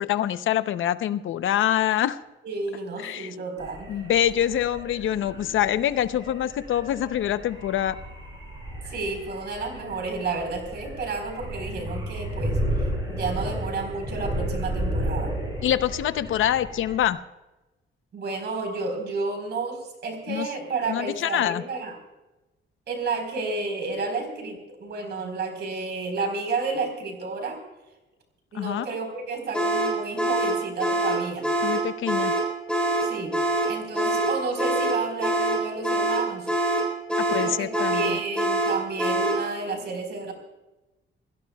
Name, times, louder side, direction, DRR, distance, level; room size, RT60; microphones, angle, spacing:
voice 1, 0.0-2.2 3.0-3.3 3.9-8.0 15.6-17.2 20.3-20.5 20.9-21.6 28.5-28.9 31.6-32.3 37.3-38.2, left 11 dB, 80° left, 12 dB, 0.7 m, -25 dB
voice 2, 2.4-3.9 8.9-12.6 13.1-15.3 18.1-22.0 22.9-27.6 28.5-31.5 33.0-33.3 33.7-36.5 37.4-40.3, right 3 dB, 55° right, 4 dB, 4.4 m, -31 dB
sound 1, 3.6-17.1, equal, 20° right, 6.5 m, -33 dB
sound 2, 29.5-39.5, right 1 dB, 5° left, 4.1 m, -25 dB
28.0 x 17.0 x 2.3 m, 1.0 s
wide cardioid pair, 165°, 20 cm